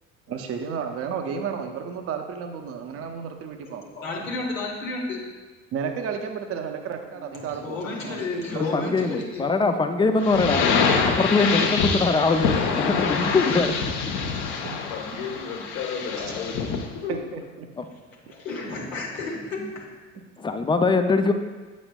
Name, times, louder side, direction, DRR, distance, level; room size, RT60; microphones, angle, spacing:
voice 1, 0.3-3.8 4.2-4.3 5.7-8.2 8.5-9.1 12.9-13.0 14.6-14.8 17.1-17.7 18.3-18.4, right 6 dB, 40° right, 5 dB, 0.6 m, -32 dB
voice 2, 3.6-5.2 7.1-9.5 17.9-18.0 18.3-19.2 19.5-19.8, left 2 dB, 90° left, -3 dB, 1.1 m, -32 dB
voice 3, 8.6-10.7 11.0-13.9 17.8-17.9 20.4-21.3, left 3 dB, 15° left, 7 dB, 0.3 m, -22 dB
sound 1, 10.2-16.9, left 5 dB, 50° left, 0.8 m, -25 dB
voice 4, 11.5-11.9 14.9-16.6 16.9-17.2 19.2-19.7, left 6 dB, 70° left, 0 dB, 1.3 m, -34 dB
7.7 x 6.1 x 2.2 m, 1.3 s
hypercardioid pair, 60°, 38 cm